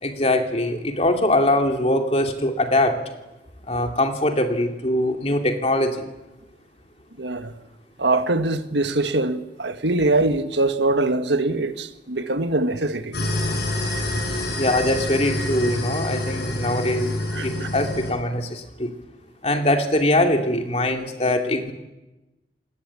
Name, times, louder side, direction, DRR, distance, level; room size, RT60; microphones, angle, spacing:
voice 1, 0.0-3.0 3.7-6.0 14.6-18.9 19.4-21.7, left 1 dB, 35° left, 2.9 m, -22 dB
voice 2, 7.2-7.5 8.0-13.1 17.3-17.7, right 2 dB, 80° right, 1.7 m, -23 dB
sound 1, 13.1-18.1, left 1 dB, 65° left, 7.6 m, -27 dB
28.0 x 20.0 x 8.6 m
head